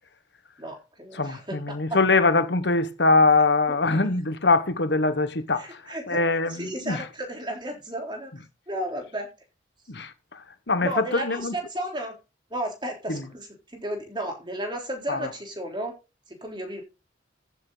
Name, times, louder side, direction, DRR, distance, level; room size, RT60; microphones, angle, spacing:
voice 1, 0.6-2.0 5.6-6.2 6.5-8.3 8.7-9.3 10.8-12.1 12.5-15.9 16.3-16.8, right 1 dB, 25° right, 3.6 m, -33 dB
voice 2, 1.1-7.0 9.9-10.4 10.7-11.5 13.1-13.2 15.1-15.3, left 3 dB, 65° left, 1.3 m, -23 dB
14.5 x 8.8 x 4.0 m
head